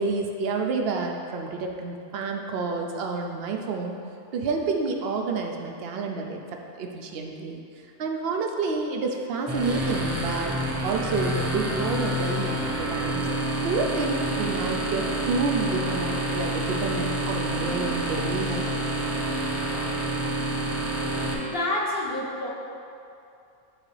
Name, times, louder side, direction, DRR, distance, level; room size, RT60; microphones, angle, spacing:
voice 1, 0.0-4.0 4.3-6.4 6.7-7.6 8.0-10.5 10.8-13.3 13.6-18.8, right 4 dB, 60° right, 2 dB, 0.7 m, -29 dB
sound 1, 9.5-21.3, right 1 dB, 20° right, 0.4 m, -28 dB
voice 2, 21.3-22.5, left 1 dB, 50° left, -4 dB, 1.1 m, -28 dB
9.1 x 3.5 x 3.2 m, 2.6 s
omnidirectional pair, 1.3 m